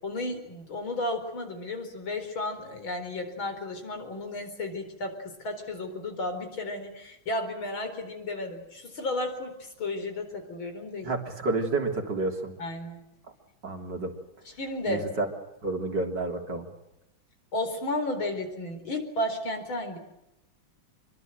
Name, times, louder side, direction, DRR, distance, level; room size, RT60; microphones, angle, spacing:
voice 1, 0.0-11.1 12.6-13.0 14.6-15.1 17.5-20.0, left 2 dB, 80° left, 6 dB, 5.2 m, -33 dB
voice 2, 11.0-12.5 13.6-14.1 14.9-15.3 15.6-16.7, right 3 dB, 55° right, 3 dB, 4.1 m, -29 dB
26.5 x 23.5 x 7.9 m, 0.88 s
omnidirectional pair, 2.2 m